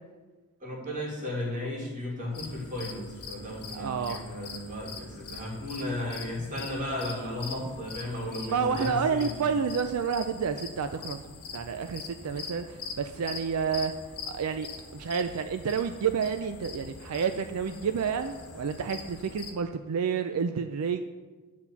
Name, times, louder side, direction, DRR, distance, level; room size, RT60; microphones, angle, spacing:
voice 1, 0.6-9.4, left 1 dB, 35° right, -3 dB, 2.4 m, -35 dB
sound 1, 2.3-19.5, left 5 dB, 85° left, 1.4 m, -43 dB
voice 2, 3.7-4.2 8.5-11.2 11.5-13.9 14.3-14.7 14.9-21.0, right 6 dB, 80° right, 8 dB, 0.4 m, -29 dB
9.7 x 4.2 x 7.1 m, 1.3 s
head